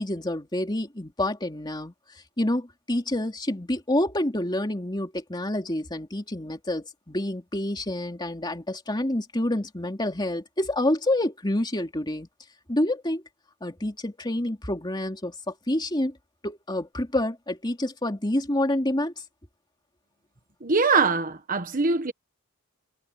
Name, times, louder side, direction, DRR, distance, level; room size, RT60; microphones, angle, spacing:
voice 1, 0.0-1.9 2.4-12.3 12.7-13.2 13.6-16.1 16.4-19.1, left 1 dB, 20° left, 3.0 m, -28 dB
voice 2, 20.6-22.1, right 4 dB, 40° right, 1.3 m, -22 dB
head